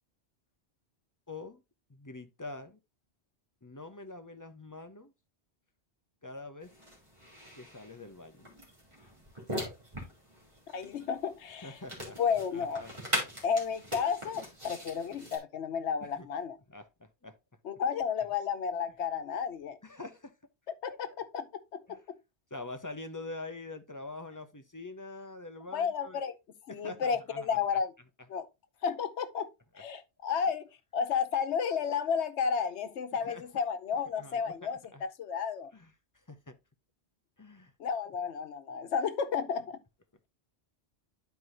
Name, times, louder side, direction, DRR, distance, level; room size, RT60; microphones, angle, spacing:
voice 1, 1.3-1.6 1.9-2.8 3.6-5.1 6.2-6.7 7.6-8.5 11.6-12.2 12.5-12.9 16.0-16.3 16.7-17.4 19.8-20.3 20.9-21.2 21.9-22.0 22.5-26.3 26.7-27.6 29.7-29.8 33.1-33.6 33.9-35.1 35.7-35.9 36.3-36.6 37.4-37.7, left 2 dB, 20° left, 0.6 m, -45 dB
sound 1, 6.6-15.4, equal, 25° right, 2.8 m, -41 dB
voice 2, 10.7-11.7 12.2-12.8 13.4-16.6 17.6-19.8 20.8-21.4 21.7-21.8 25.7-26.3 26.7-27.9 28.3-28.5 28.8-29.5 29.8-30.7 30.9-34.8 35.2-35.7 37.8-39.8, left 6 dB, 80° left, 1.1 m, -32 dB
11.5 x 4.6 x 2.6 m
omnidirectional pair, 1.1 m